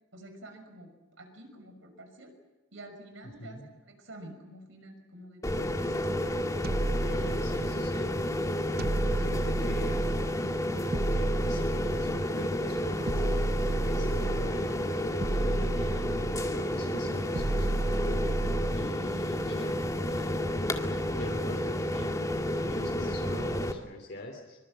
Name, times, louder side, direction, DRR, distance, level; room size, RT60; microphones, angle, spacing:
voice 1, 0.1-0.9 1.2-2.3 2.7-3.6 3.9-6.0, right 1 dB, 70° right, 6 dB, 6.0 m, -48 dB
sound 1, 5.4-23.7, left 1 dB, 15° left, 2.1 m, -31 dB
sound 2, 6.6-8.0 8.8-10.4 10.9-12.3 13.1-14.7 15.2-16.6 17.3-19.0, right 2 dB, 55° right, 0.7 m, -31 dB
voice 2, 6.8-8.1 8.7-10.2 11.0-16.1 16.5-20.5 20.8-24.6, left 1 dB, 60° left, 1 dB, 3.1 m, -43 dB
25.0 x 24.0 x 7.7 m, 1.2 s
head